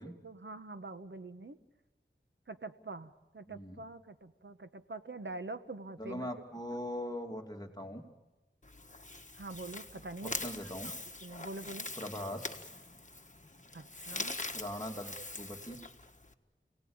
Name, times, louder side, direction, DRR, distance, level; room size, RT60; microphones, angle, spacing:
voice 1, 0.0-1.6 2.5-6.3 9.4-10.3 10.6-11.0 11.2-11.9 13.7-14.4, right 2 dB, 65° right, 10 dB, 1.3 m, -45 dB
voice 2, 3.5-3.8 6.0-8.0 10.2-10.9 12.0-12.6 14.5-15.8, left 1 dB, 20° left, 2 dB, 2.6 m, -41 dB
sound 1, 8.6-16.3, left 2 dB, 40° left, 1.5 m, -43 dB
30.0 x 18.5 x 8.9 m, 1.1 s
wide cardioid pair, 55°, 20 cm